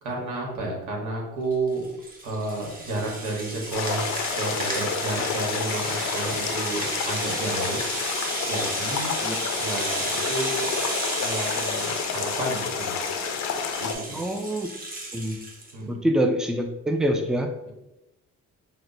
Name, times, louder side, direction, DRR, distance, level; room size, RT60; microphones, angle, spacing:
voice 1, 0.0-1.8 2.2-7.8 8.5-9.1 9.6-10.7 11.2-13.0 13.8-14.2 15.7-16.0, right 2 dB, 90° right, -1 dB, 1.2 m, -31 dB
Rattle (instrument), 1.5-15.7, right 2 dB, 30° right, 1.0 m, -33 dB
sound 1, 3.7-13.9, left 6 dB, 65° left, 0.5 m, -29 dB
voice 2, 14.1-14.7 15.1-15.4 15.9-17.5, right 1 dB, ahead, 5 dB, 0.3 m, -25 dB
5.8 x 2.1 x 2.6 m, 0.92 s
cardioid pair, 90°, 30 cm